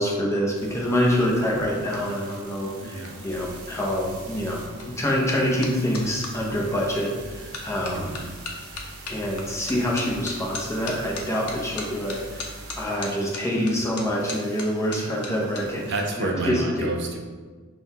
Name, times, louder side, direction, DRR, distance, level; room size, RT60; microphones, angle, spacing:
voice 1, 0.0-8.1 9.1-12.5 12.8-16.9, equal, 15° left, -4 dB, 0.6 m, -26 dB
sound 1, 0.5-16.1, right 2 dB, 85° right, 0.6 m, -43 dB
sound 2, 1.5-6.3 7.0-7.2 7.5-15.6 15.9-16.3, left 3 dB, 80° left, 0.6 m, -39 dB
voice 2, 2.8-3.2 7.9-8.2 15.9-17.2, right 2 dB, 50° right, 2 dB, 0.4 m, -29 dB
5.4 x 2.2 x 2.7 m, 1.5 s
head